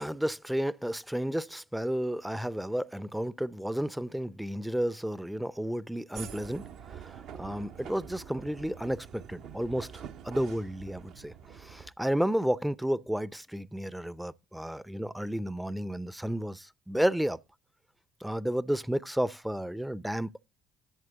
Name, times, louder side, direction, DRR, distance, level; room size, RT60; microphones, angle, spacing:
voice 1, 0.0-6.6 6.9-17.4 18.2-20.5, equal, 5° right, 0.5 m, -32 dB
sound 1, 6.1-11.9, right 8 dB, 55° right, 0.7 m, -46 dB
11.0 x 7.7 x 4.0 m
figure-of-eight pair, 55°, 0 cm